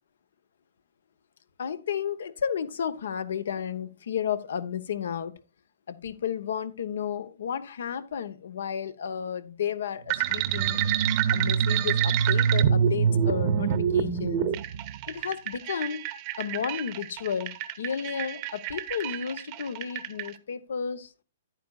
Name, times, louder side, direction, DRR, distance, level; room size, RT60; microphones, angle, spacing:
voice 1, 1.6-5.3 5.9-10.8 11.3-14.5 15.1-16.0 16.4-21.1, left 8 dB, 75° left, 1.0 m, -32 dB
sound 1, 10.1-20.3, right 11 dB, 40° right, 0.8 m, -29 dB
sound 2, 10.2-15.1, right 6 dB, 65° right, 0.5 m, -26 dB
10.5 x 9.4 x 2.4 m
hypercardioid pair, 140°, 0 cm